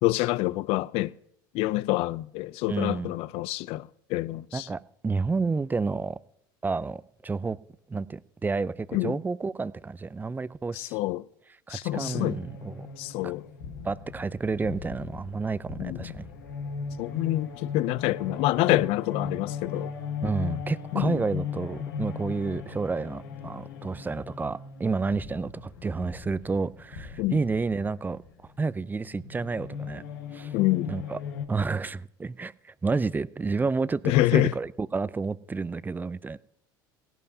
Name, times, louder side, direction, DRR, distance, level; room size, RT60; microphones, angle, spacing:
voice 1, 0.0-1.1 1.5-4.7 8.9-9.2 10.7-11.2 11.7-12.4 13.0-13.5 15.8-16.1 17.0-19.9 20.9-21.2 27.2-27.4 30.5-30.9 34.0-34.5, left 17 dB, 65° left, 0.5 m, -27 dB
voice 2, 2.7-3.1 4.5-6.2 6.6-7.6 7.9-11.0 11.7-12.9 13.2-13.3 13.8-16.3 20.2-28.2 28.6-30.0 30.3-30.5 30.9-31.2 31.5-36.4, right 4 dB, 15° right, 0.5 m, -30 dB
sound 1, 11.9-31.5, left 6 dB, 80° left, 1.5 m, -38 dB
17.0 x 16.5 x 2.8 m
hypercardioid pair, 80°, 11 cm